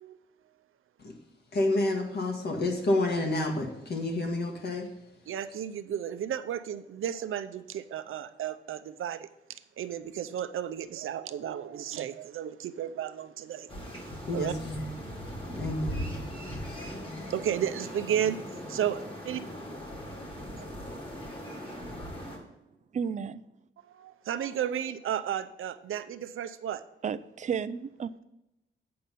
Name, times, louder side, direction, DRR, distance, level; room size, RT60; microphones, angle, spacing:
voice 1, 1.5-4.9 14.3-14.9 15.5-16.1, left 2 dB, 50° left, 1 dB, 1.8 m, -29 dB
voice 2, 5.3-9.3 9.8-14.0 14.3-14.5 17.3-18.4 18.7-19.0 19.3-19.4 20.6-20.7 23.8-26.8, right 9 dB, 90° right, 11 dB, 0.6 m, -33 dB
sound 1, 13.7-22.4, equal, 25° left, 1.9 m, -39 dB
voice 3, 22.9-23.4 27.0-28.1, right 7 dB, 35° right, 14 dB, 0.4 m, -32 dB
8.6 x 5.8 x 5.3 m, 0.90 s
wide cardioid pair, 150°, 21 cm